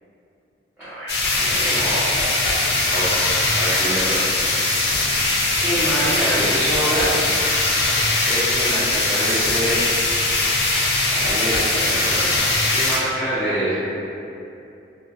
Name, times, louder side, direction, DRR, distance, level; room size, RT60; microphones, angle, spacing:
voice 1, 0.8-2.1 2.4-4.3 5.0-5.1 5.6-7.3 8.3-9.8 11.1-12.4 12.7-13.7, right 1 dB, 10° right, -16 dB, 0.6 m, -26 dB
sound 1, 1.1-13.0, left 2 dB, 65° left, 0.4 m, -20 dB
2.2 x 2.1 x 2.7 m, 2.7 s
head